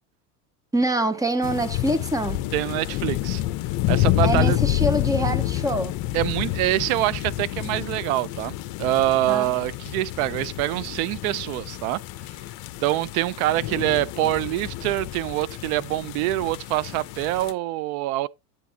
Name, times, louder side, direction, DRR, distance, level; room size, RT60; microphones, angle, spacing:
voice 1, 0.7-2.4 4.2-5.9 9.3-9.5, right 1 dB, 10° right, 0.6 m, -25 dB
sound 1, 1.4-17.5, left 15 dB, 50° left, 0.8 m, -28 dB
voice 2, 2.5-3.4 3.9-4.6 6.1-12.0 12.8-18.3, right 16 dB, 65° right, 0.6 m, -25 dB
8.6 x 8.3 x 2.8 m
supercardioid pair, 145°, 47 cm